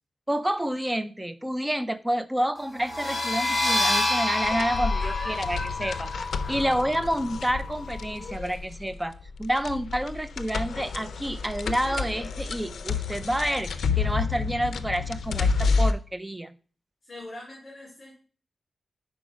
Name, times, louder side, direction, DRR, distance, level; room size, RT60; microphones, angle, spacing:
voice 1, 0.3-6.1 6.5-16.5, equal, 10° right, 12 dB, 0.4 m, -29 dB
sound 1, 2.8-8.2, left 2 dB, 15° left, 2.2 m, -29 dB
sound 2, 4.4-15.9, left 4 dB, 90° left, 0.4 m, -30 dB
voice 2, 5.0-6.5 8.1-8.6 17.0-18.1, left 2 dB, 35° left, -4 dB, 2.6 m, -41 dB
5.1 x 4.7 x 5.1 m, 0.39 s
wide cardioid pair, 125°, 0 cm